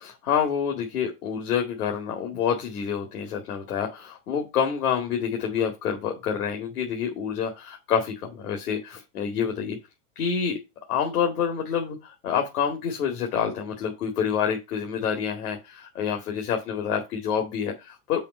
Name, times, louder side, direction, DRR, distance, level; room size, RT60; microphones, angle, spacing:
voice 1, 0.0-9.8 10.2-10.6 10.9-18.2, left 7 dB, 75° left, 2 dB, 2.2 m, -27 dB
5.7 x 5.1 x 6.3 m, 0.24 s
supercardioid pair, 165°, 45 cm